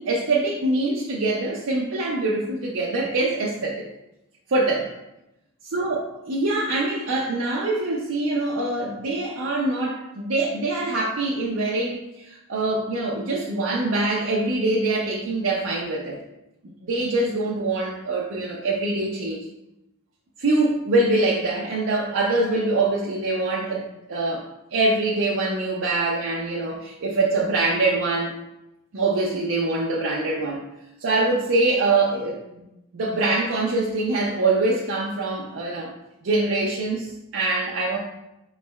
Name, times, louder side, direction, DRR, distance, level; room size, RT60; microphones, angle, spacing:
voice 1, 0.0-3.8 4.5-4.9 5.6-16.2 16.8-19.4 20.4-28.3 28.9-30.6 31.0-32.6 32.9-35.9 36.2-38.0, right 2 dB, 65° right, -4 dB, 0.5 m, -24 dB
4.4 x 3.1 x 2.2 m, 0.89 s
head